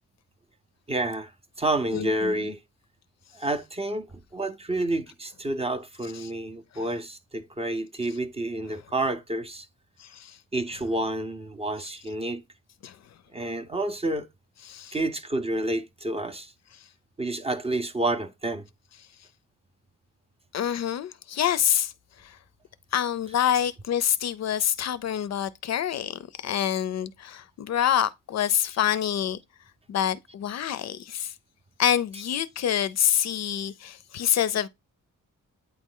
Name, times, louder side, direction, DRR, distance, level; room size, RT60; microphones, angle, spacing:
voice 1, 0.9-1.3 1.6-2.6 3.3-9.7 10.5-12.4 13.3-14.3 14.9-16.5 17.2-18.7, right 2 dB, 20° right, 0.5 m, -29 dB
voice 2, 1.9-2.4 10.0-10.4 12.8-13.0 14.7-15.0 20.5-21.9 22.2-22.4 22.9-29.4 29.9-31.3 31.8-34.7, left 10 dB, 55° left, 0.4 m, -26 dB
8.7 x 3.0 x 3.7 m
wide cardioid pair, 140°, 32 cm